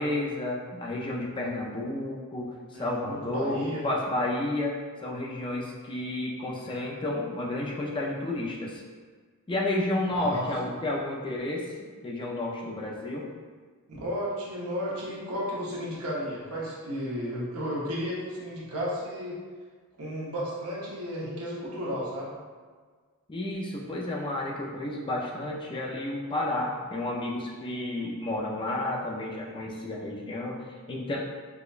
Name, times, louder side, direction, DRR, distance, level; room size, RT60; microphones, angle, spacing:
voice 1, 0.0-8.8 9.5-11.8 12.0-13.3 23.3-31.2, left 1 dB, 20° left, -2 dB, 0.3 m, -31 dB
voice 2, 2.7-3.8 10.1-10.4 13.9-19.4 20.0-22.3, equal, 75° right, -6 dB, 0.9 m, -33 dB
4.7 x 2.1 x 2.4 m, 1.5 s
head